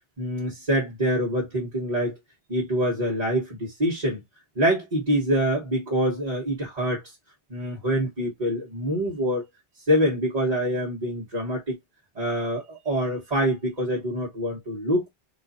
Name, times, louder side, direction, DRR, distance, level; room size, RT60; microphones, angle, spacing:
voice 1, 0.2-2.2 2.5-4.2 4.6-7.0 7.5-9.4 9.9-11.8 12.1-15.1, equal, 40° right, 1.2 m, -25 dB
3.7 x 2.5 x 4.0 m
omnidirectional pair, 1.1 m